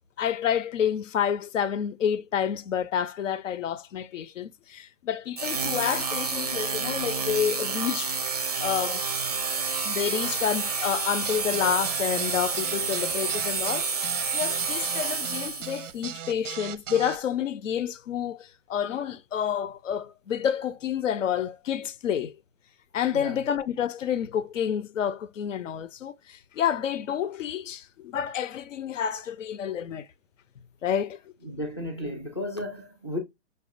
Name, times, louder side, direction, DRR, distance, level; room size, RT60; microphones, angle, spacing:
voice 1, 0.2-8.2 8.6-9.1 9.8-22.4 22.9-30.1 30.8-31.2, left 9 dB, 85° left, 0.6 m, -29 dB
sound 1, 5.4-15.9, right 5 dB, 35° right, 0.4 m, -29 dB
sound 2, 11.2-17.2, right 10 dB, 90° right, 0.5 m, -38 dB
voice 2, 31.4-33.2, left 1 dB, 25° left, 0.4 m, -33 dB
5.3 x 2.3 x 2.4 m
hypercardioid pair, 175°, 37 cm